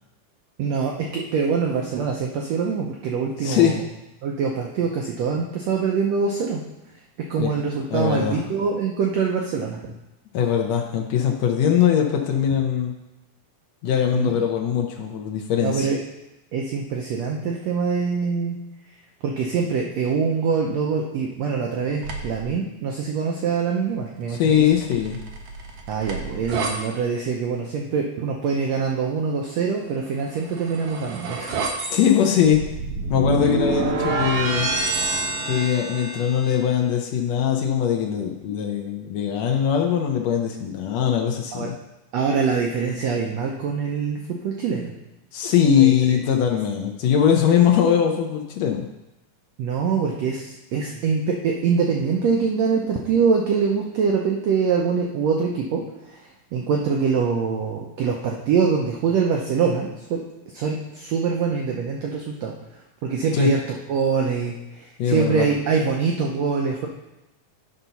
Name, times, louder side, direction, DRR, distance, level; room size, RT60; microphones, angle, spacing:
voice 1, 0.6-3.8 4.2-6.6 7.3-9.8 14.1-14.3 15.6-16.0 16.5-18.6 19.2-24.6 25.9-31.5 41.5-41.7 42.1-44.9 45.7-46.2 49.6-60.2 60.5-62.5 63.0-63.6 63.9-66.9, right 5 dB, 85° right, 0 dB, 1.5 m, -24 dB
voice 2, 3.4-3.8 7.4-7.5 7.9-8.4 10.3-12.9 13.8-15.9 24.3-25.2 31.9-32.6 33.1-34.7 35.4-41.7 45.3-48.8 63.3-63.5 65.0-65.5, left 8 dB, 90° left, 2 dB, 1.5 m, -21 dB
sound 1, 22.0-22.5 24.3-26.7 30.2-36.6, right 3 dB, 70° right, 1.5 m, -28 dB
11.0 x 4.0 x 5.7 m, 0.94 s
omnidirectional pair, 4.0 m